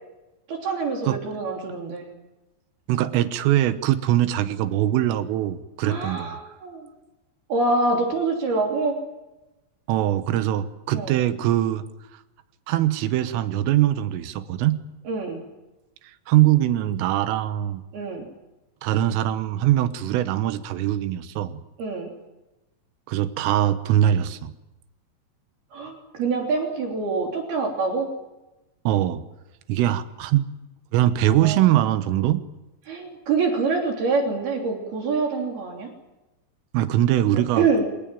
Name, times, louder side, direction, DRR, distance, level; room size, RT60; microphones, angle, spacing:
voice 1, 0.5-2.1 5.8-6.9 7.5-9.0 10.9-11.1 15.1-15.4 17.9-18.3 21.8-22.1 25.7-28.1 31.4-31.7 32.9-35.9 37.6-37.9, right 3 dB, 55° right, 2 dB, 4.9 m, -25 dB
voice 2, 2.9-6.4 9.9-11.8 12.7-14.8 16.3-17.8 18.8-21.6 23.1-24.5 28.9-29.2 29.7-30.5 30.9-32.4 36.7-37.7, right 13 dB, 85° right, 12 dB, 3.8 m, -22 dB
27.5 x 17.5 x 9.2 m, 1.0 s
omnidirectional pair, 5.8 m